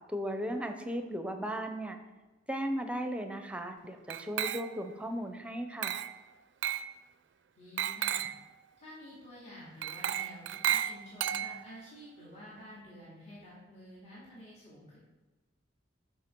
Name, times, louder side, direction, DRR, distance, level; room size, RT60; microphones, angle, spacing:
voice 1, 0.1-2.0 2.5-6.0, equal, 5° right, 6 dB, 0.7 m, -36 dB
Glass, 4.1-4.9 5.8-6.2 6.6-6.9 7.8-8.4 9.8-11.8, right 10 dB, 65° right, 0.4 m, -33 dB
voice 2, 7.6-8.2 8.8-15.0, equal, 35° left, -8 dB, 2.5 m, -50 dB
12.5 x 5.2 x 4.6 m, 1.2 s
head